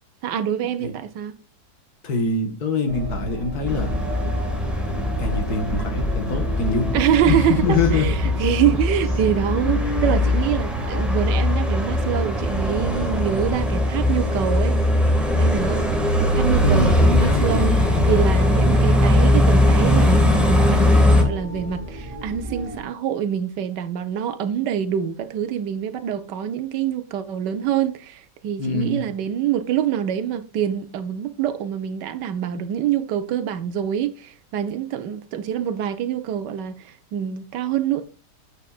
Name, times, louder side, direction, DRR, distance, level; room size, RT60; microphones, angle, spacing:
voice 1, 0.2-1.4 6.9-14.8 15.4-15.9 16.2-17.7 18.0-38.0, right 9 dB, 90° right, 1.4 m, -25 dB
voice 2, 2.0-3.9 5.2-6.9 7.3-8.3 16.6-17.9 28.6-29.1, left 3 dB, 65° left, 1.8 m, -24 dB
sound 1, 2.9-22.8, right 1 dB, 20° right, 2.6 m, -33 dB
sound 2, 3.7-21.2, left 1 dB, ahead, 1.6 m, -20 dB
9.1 x 8.2 x 2.4 m
omnidirectional pair, 1.8 m